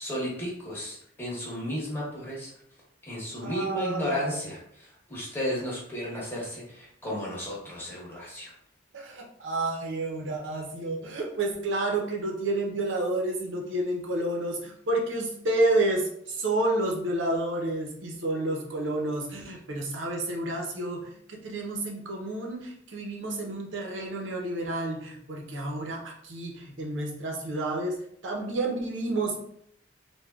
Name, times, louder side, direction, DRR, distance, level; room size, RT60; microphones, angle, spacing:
voice 1, 0.0-2.5 3.0-8.5, equal, 10° left, -6 dB, 1.0 m, -33 dB
voice 2, 3.4-4.4 8.9-28.0 28.2-29.4, right 2 dB, 85° right, 0 dB, 0.7 m, -30 dB
3.4 x 2.2 x 2.3 m, 0.70 s
head